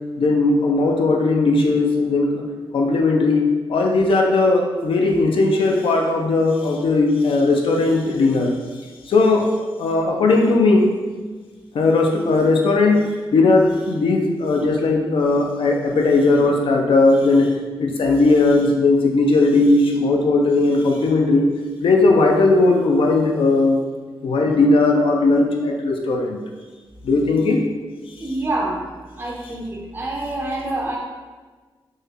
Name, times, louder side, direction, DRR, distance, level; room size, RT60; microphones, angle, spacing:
voice 1, 0.2-2.4 2.7-3.4 3.7-8.5 9.1-9.5 9.8-10.9 11.7-17.5 17.8-21.5 21.8-23.8 24.2-26.4 27.0-27.6, left 3 dB, 75° left, 1 dB, 0.5 m, -17 dB
voice 2, 28.2-28.8 29.2-31.0, right 2 dB, 25° right, -2 dB, 0.4 m, -26 dB
3.5 x 2.1 x 3.4 m, 1.4 s
wide cardioid pair, 90°, 9 cm